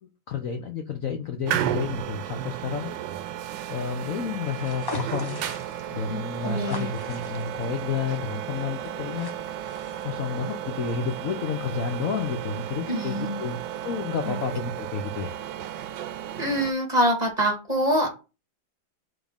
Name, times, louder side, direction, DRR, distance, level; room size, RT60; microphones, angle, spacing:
voice 1, 0.0-2.9 3.7-5.4 5.9-9.3 10.0-15.3, left 6 dB, 55° left, 4 dB, 1.0 m, -30 dB
sound 1, 1.5-16.7, right 11 dB, 75° right, 1.2 m, -34 dB
sound 2, 4.4-10.1, left 2 dB, 20° left, 0.6 m, -41 dB
voice 2, 6.1-6.9 12.9-13.4 14.2-14.4 16.4-18.1, right 1 dB, 20° right, 1 dB, 1.9 m, -25 dB
5.1 x 3.9 x 5.2 m, 0.29 s
omnidirectional pair, 2.1 m